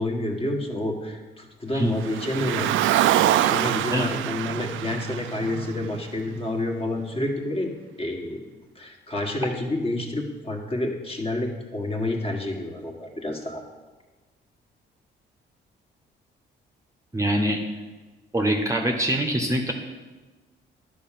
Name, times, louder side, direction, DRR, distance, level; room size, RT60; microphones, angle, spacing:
voice 1, 0.0-7.7 8.0-8.4 8.7-13.6, left 1 dB, 30° left, 1 dB, 1.7 m, -29 dB
Car, 2.0-6.4, right 12 dB, 80° right, 0.4 m, -24 dB
voice 2, 3.7-4.1 17.1-17.6 18.3-19.7, right 1 dB, 15° right, 3 dB, 1.0 m, -24 dB
10.0 x 5.0 x 7.5 m, 1.3 s
cardioid pair, 90°, 20 cm